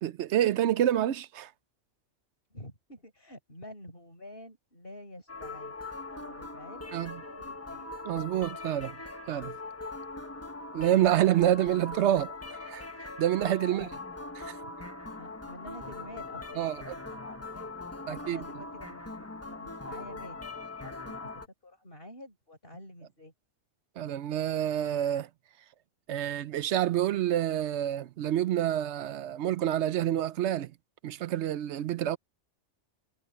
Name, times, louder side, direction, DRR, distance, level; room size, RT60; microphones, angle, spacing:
voice 1, 0.0-1.5 6.9-7.1 8.1-9.0 9.3-9.6 10.7-13.9 14.4-14.6 16.6-16.9 18.1-18.4 24.0-25.3 26.1-30.7 31.0-32.2, right 11 dB, 70° right, 0.9 m, -28 dB
voice 2, 2.5-5.8 6.1-7.9 13.7-13.9 14.6-14.7 15.2-17.8 18.1-20.4 20.8-21.3 21.6-23.3, left 1 dB, 50° left, 6.5 m, -49 dB
sound 1, 5.3-21.5, left 2 dB, 15° left, 1.1 m, -41 dB
omnidirectional pair, 1.3 m